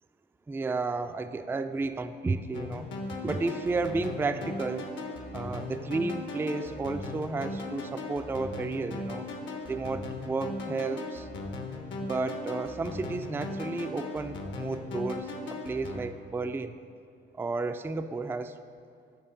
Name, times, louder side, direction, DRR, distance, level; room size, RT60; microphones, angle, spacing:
voice 1, 0.5-2.9 3.2-4.9 5.3-9.3 9.6-11.3 12.0-16.8 17.3-18.5, right 3 dB, 10° right, 8 dB, 0.3 m, -32 dB
sound 1, 2.5-16.0, left 2 dB, 70° left, 1.1 m, -38 dB
7.6 x 5.0 x 6.6 m, 2.3 s
cardioid pair, 90°, 20 cm